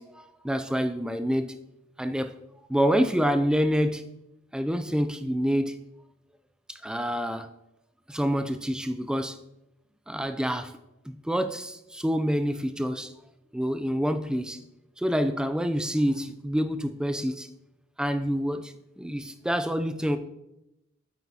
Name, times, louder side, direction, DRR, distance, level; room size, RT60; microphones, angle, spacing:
voice 1, 0.0-1.5 2.0-2.3 2.7-4.0 4.5-5.8 6.7-7.5 8.1-9.4 10.1-10.7 11.1-13.1 13.5-14.6 15.0-17.5 18.0-20.2, equal, 5° right, 9 dB, 0.3 m, -27 dB
8.6 x 8.3 x 2.8 m, 0.90 s
head